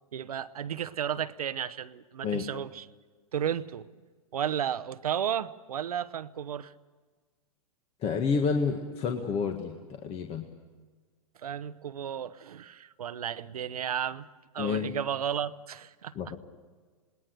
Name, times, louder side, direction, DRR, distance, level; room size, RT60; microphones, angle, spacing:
voice 1, 0.1-2.9 3.3-3.9 4.3-6.7 11.4-14.3 14.5-16.1, right 9 dB, 80° right, 15 dB, 0.9 m, -33 dB
voice 2, 8.0-10.4 14.6-14.9 16.1-16.4, left 5 dB, 30° left, 4 dB, 1.7 m, -29 dB
27.0 x 20.0 x 6.7 m, 1.4 s
hypercardioid pair, 120°, 19 cm